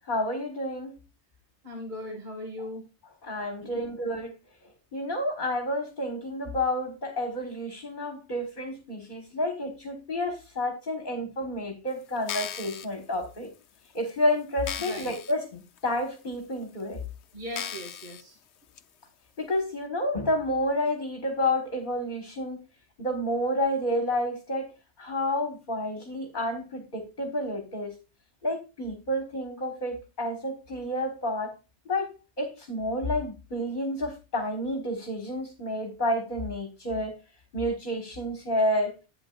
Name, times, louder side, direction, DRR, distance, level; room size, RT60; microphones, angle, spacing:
voice 1, 0.1-1.0 3.2-4.3 4.9-13.5 13.9-17.0 19.4-22.6 23.0-24.7 25.0-27.9 28.4-31.5 31.8-32.1 32.4-37.1 37.5-39.0, left 1 dB, 45° left, 4 dB, 1.7 m, -30 dB
voice 2, 1.6-2.9 3.6-4.0 14.8-15.1 17.3-18.4, left 1 dB, 40° right, 1 dB, 2.0 m, -39 dB
sound 1, 12.2-12.9 13.5-13.6 14.1-14.2 14.6-15.3 15.8-15.9 16.6-16.7 17.5-18.2 18.8-18.9, left 8 dB, 75° left, 1.0 m, -36 dB
11.5 x 8.9 x 2.4 m, 0.28 s
omnidirectional pair, 1.2 m